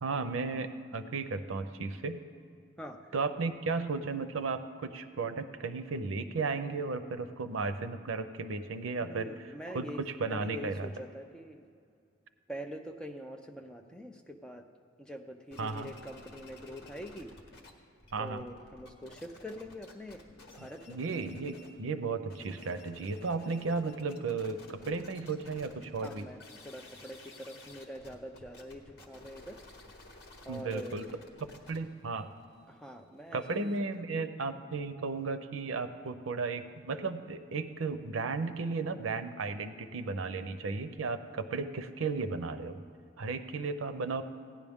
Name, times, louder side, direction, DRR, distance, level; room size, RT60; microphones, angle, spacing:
voice 1, 0.0-2.2 3.1-10.9 15.6-15.9 18.1-18.5 20.6-26.3 30.5-31.1 31.7-32.3 33.3-42.8 43.2-44.2, right 4 dB, 85° right, 10 dB, 0.6 m, -35 dB
voice 2, 9.0-11.6 12.5-14.7 15.0-17.3 18.2-21.0 26.0-26.4 26.6-29.6 30.4-31.0 32.7-33.7 34.1-34.3, equal, 5° left, 3 dB, 0.5 m, -44 dB
sound 1, 15.5-17.7 18.0-21.8 22.2-33.7, left 2 dB, 55° left, 1.4 m, -54 dB
17.0 x 10.0 x 3.6 m, 2.3 s
head